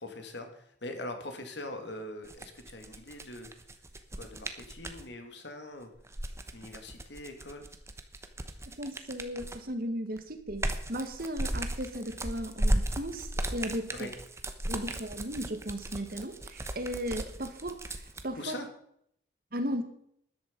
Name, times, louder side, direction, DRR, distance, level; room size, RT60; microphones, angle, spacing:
voice 1, 0.0-3.5 4.2-5.9 6.5-7.7 8.4-8.5 13.9-14.1 18.4-18.7, left 1 dB, 65° left, 6 dB, 2.4 m, -42 dB
sound 1, 2.2-5.0 6.0-9.7 10.2-18.2, right 1 dB, 15° right, 1.0 m, -35 dB
voice 2, 8.8-14.1 14.7-17.8 18.2-18.6 19.5-19.8, equal, 50° right, 8 dB, 1.6 m, -36 dB
13.5 x 11.0 x 5.3 m, 0.69 s
head